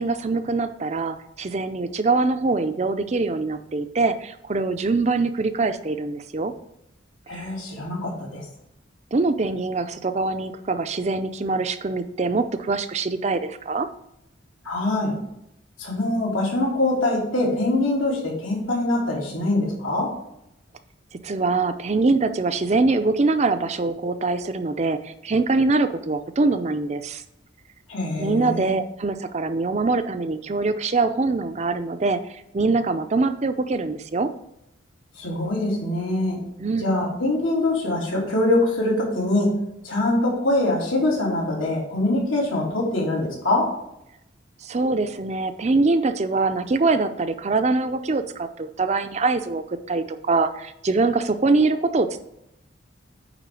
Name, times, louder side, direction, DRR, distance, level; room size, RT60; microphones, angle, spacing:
voice 1, 0.0-6.5 7.3-7.5 9.1-13.9 21.2-27.2 28.2-34.3 36.6-36.9 44.6-52.2, right 3 dB, 35° right, 9 dB, 0.5 m, -23 dB
voice 2, 7.3-8.4 14.6-15.1 15.8-20.1 27.9-28.7 35.2-36.4 36.8-39.5 39.8-43.7, left 2 dB, 85° left, -4 dB, 3.0 m, -23 dB
9.1 x 3.7 x 6.2 m, 0.81 s
head